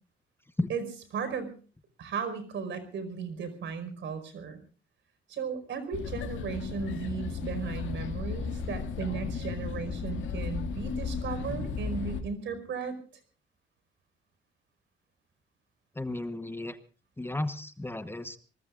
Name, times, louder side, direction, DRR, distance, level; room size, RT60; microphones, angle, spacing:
voice 1, 1.1-1.6 2.0-4.6 5.3-13.0, right 6 dB, 70° right, 10 dB, 5.0 m, -36 dB
sound 1, 5.9-12.2, left 5 dB, 75° left, 2.2 m, -35 dB
voice 2, 15.9-16.8 17.2-18.4, left 2 dB, 10° left, 11 dB, 1.1 m, -33 dB
26.0 x 20.0 x 2.5 m, 0.38 s
cardioid pair, 90°, 20 cm